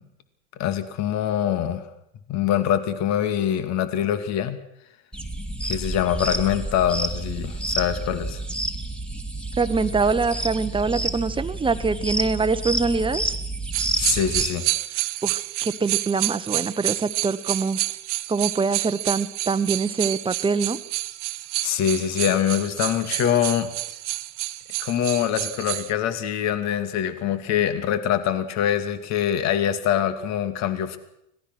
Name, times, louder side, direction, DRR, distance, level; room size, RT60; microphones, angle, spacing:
voice 1, 0.6-1.8 2.3-4.6 5.6-8.4 14.0-14.6 21.6-23.7 24.8-31.0, left 10 dB, 45° left, 11 dB, 2.4 m, -24 dB
sound 1, 5.1-14.5, right 1 dB, 5° left, 2.9 m, -29 dB
voice 2, 9.6-13.3 15.2-17.8 18.3-20.8, right 4 dB, 15° right, 12 dB, 1.3 m, -24 dB
sound 2, 13.7-25.9, right 18 dB, 65° right, 1.1 m, -29 dB
25.0 x 18.5 x 6.3 m, 0.79 s
hypercardioid pair, 95°, 38 cm